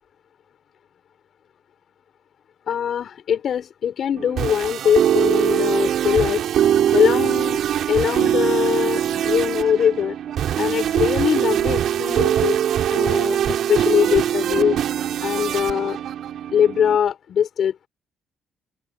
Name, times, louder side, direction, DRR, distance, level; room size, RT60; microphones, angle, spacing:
voice 1, 2.7-6.4 6.9-7.6 7.9-10.2 10.6-12.6 12.9-14.8 15.2-16.0 16.5-17.7, left 8 dB, 60° left, 5.6 m, -22 dB
sound 1, 4.2-17.0, right 10 dB, 70° right, 7.6 m, -22 dB
open air
cardioid pair, 90°, 0 cm